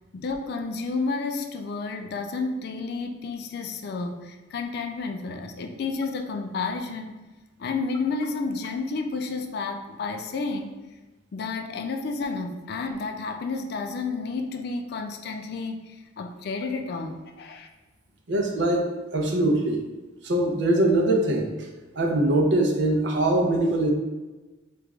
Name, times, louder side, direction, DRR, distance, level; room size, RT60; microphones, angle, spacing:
voice 1, 0.1-7.2 7.6-10.7 11.3-17.7, left 4 dB, 60° left, 5 dB, 0.3 m, -31 dB
voice 2, 18.3-19.8 20.2-21.5 22.0-23.9, right 1 dB, 75° right, 1 dB, 0.6 m, -22 dB
3.1 x 2.4 x 3.5 m, 1.2 s
head